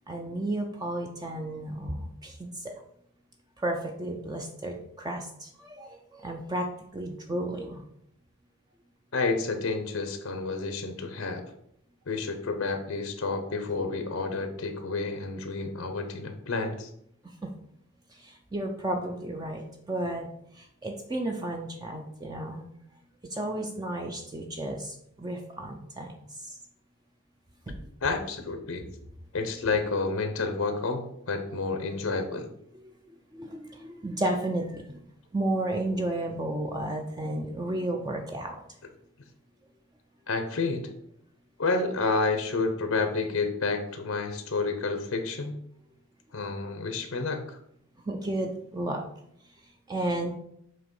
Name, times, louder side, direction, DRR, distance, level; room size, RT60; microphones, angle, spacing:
voice 1, 0.1-2.7 3.6-7.8 17.2-17.5 18.1-20.3 20.5-22.7 23.2-26.6 27.7-27.8 28.8-28.9 32.7-35.0 35.3-38.6 48.0-49.0 49.6-50.4, right 1 dB, 20° right, 3 dB, 0.5 m, -33 dB
voice 2, 9.1-11.4 12.1-16.9 28.0-28.8 29.3-32.5 40.3-40.9 41.6-45.6 46.3-47.6, left 3 dB, 80° left, 6 dB, 0.8 m, -30 dB
7.5 x 3.0 x 5.4 m, 0.73 s
head